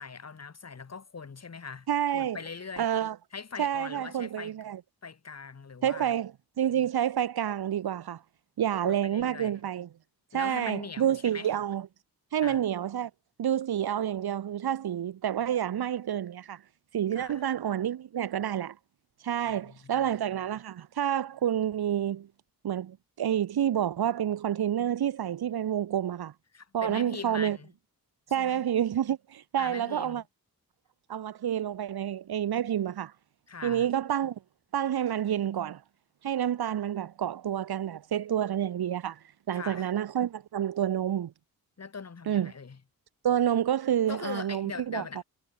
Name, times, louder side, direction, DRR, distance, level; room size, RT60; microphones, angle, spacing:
voice 1, 0.0-1.9 2.1-2.9 3.3-4.5 5.0-6.1 8.8-9.6 10.3-11.5 12.4-12.6 17.1-17.4 19.5-20.1 26.5-27.7 28.4-28.6 29.6-30.2 33.5-33.9 39.5-39.9 41.8-42.8 44.1-45.2, left 5 dB, 45° left, 6.4 m, -41 dB
voice 2, 1.9-2.4 2.8-3.2 3.6-4.8 5.8-6.3 6.6-8.2 8.6-9.9 10.3-11.9 12.3-13.1 13.4-16.6 16.9-18.8 19.2-22.3 22.6-26.3 26.7-27.6 28.3-30.2 31.1-33.1 33.6-34.4 34.7-35.8 36.2-39.2 39.5-41.3 42.3-42.5 43.2-45.2, right 10 dB, 85° right, 1.9 m, -29 dB
wide cardioid pair, 115°, 37 cm